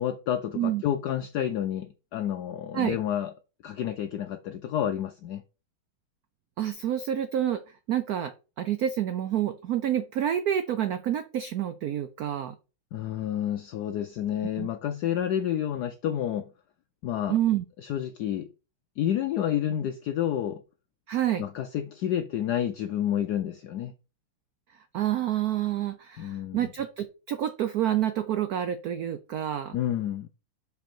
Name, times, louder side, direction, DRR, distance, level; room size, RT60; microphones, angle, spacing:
voice 1, 0.0-3.3 3.6-5.4 12.9-16.5 17.0-17.4 17.8-18.5 19.0-20.6 21.4-23.9 26.2-26.7 29.7-30.3, left 10 dB, 80° left, 0.9 m, -29 dB
voice 2, 6.6-7.6 7.9-12.6 14.6-14.7 17.3-17.6 21.1-21.4 24.9-29.8, right 11 dB, 85° right, 0.8 m, -28 dB
6.2 x 5.2 x 4.4 m
omnidirectional pair, 2.3 m